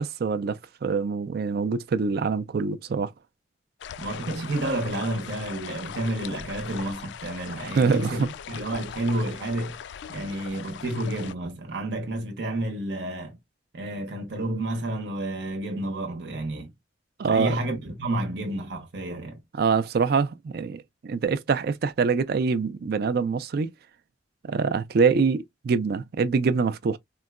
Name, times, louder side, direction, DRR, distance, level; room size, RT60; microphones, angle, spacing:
voice 1, 0.0-3.1 7.8-8.3 17.2-17.6 19.6-23.7 24.5-27.0, right 5 dB, 60° right, 0.4 m, -24 dB
sound 1, 3.8-11.3, left 8 dB, 75° left, 0.3 m, -40 dB
voice 2, 4.0-9.8 10.1-13.4 13.7-16.7 17.3-19.4, right 1 dB, 75° right, 0.9 m, -30 dB
3.7 x 2.2 x 2.3 m
head